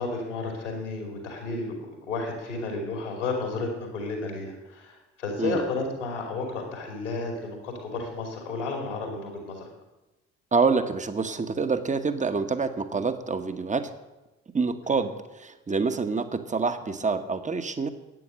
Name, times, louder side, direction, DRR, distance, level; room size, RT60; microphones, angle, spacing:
voice 1, 0.0-9.7 14.8-15.1, left 3 dB, 80° left, 1 dB, 2.8 m, -32 dB
voice 2, 10.5-13.9 14.5-17.9, right 4 dB, 20° right, 9 dB, 1.1 m, -27 dB
11.0 x 8.9 x 6.3 m, 1.1 s
figure-of-eight pair, 45°, 35 cm